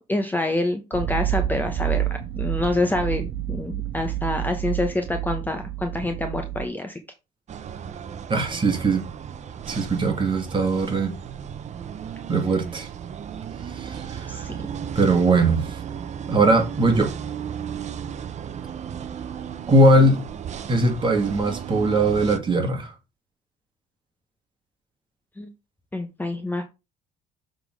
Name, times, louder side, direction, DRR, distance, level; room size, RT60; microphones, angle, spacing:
voice 1, 0.0-2.0 2.4-7.0 14.3-14.7 25.4-25.5 25.9-26.7, left 2 dB, 10° left, 1.0 m, -27 dB
sound 1, 0.9-6.7, right 12 dB, 70° right, 1.1 m, -28 dB
sound 2, 7.5-22.4, right 8 dB, 45° right, 0.8 m, -35 dB
voice 2, 8.3-9.0 9.7-11.1 12.3-12.9 13.7-14.4 15.0-15.8 16.3-17.1 19.7-20.2 20.7-22.9, right 2 dB, 30° right, 2.2 m, -20 dB
6.8 x 3.9 x 4.7 m
cardioid pair, 110°, 17 cm